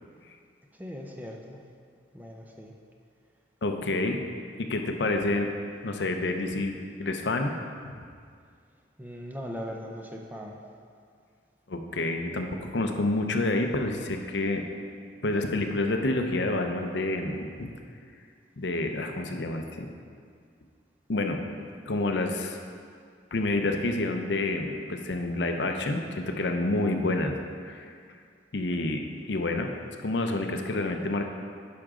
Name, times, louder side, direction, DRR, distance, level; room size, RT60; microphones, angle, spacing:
voice 1, 0.8-1.6 2.1-2.7 9.0-10.6, equal, 10° right, 1 dB, 0.6 m, -39 dB
voice 2, 3.6-4.2 4.6-5.5 5.8-6.7 7.0-7.5 7.8-7.9 11.7-14.6 15.2-17.7 18.6-19.9 21.1-21.4 21.9-22.6 23.3-27.3 27.6-27.9 28.5-29.0 29.3-29.7 30.0-31.3, left 2 dB, 70° left, 4 dB, 0.7 m, -28 dB
9.9 x 6.0 x 3.7 m, 2.2 s
head